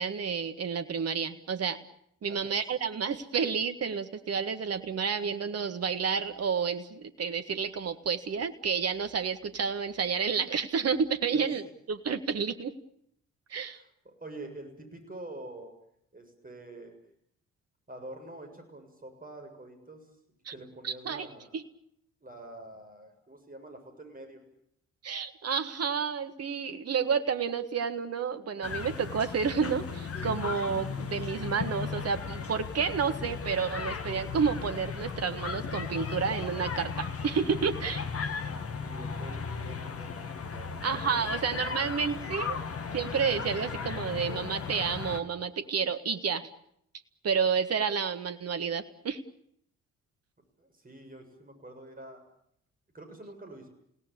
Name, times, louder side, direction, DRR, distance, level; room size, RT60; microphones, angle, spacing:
voice 1, 0.0-1.8 2.2-12.7 13.5-13.8 20.5-20.6 20.8-21.3 21.5-21.6 25.0-38.0 40.8-42.6 42.9-46.5 47.2-49.2, right 6 dB, 45° right, 10 dB, 1.7 m, -30 dB
voice 2, 13.7-15.7 16.1-16.9 17.9-20.1 20.5-21.6 22.2-24.4 38.8-40.8 41.2-42.2 50.6-52.2 52.9-53.7, right 2 dB, 25° right, 5 dB, 7.1 m, -46 dB
sound 1, 28.6-45.2, left 5 dB, 40° left, 2.1 m, -36 dB
29.0 x 17.5 x 8.7 m, 0.72 s
figure-of-eight pair, 40°, 36 cm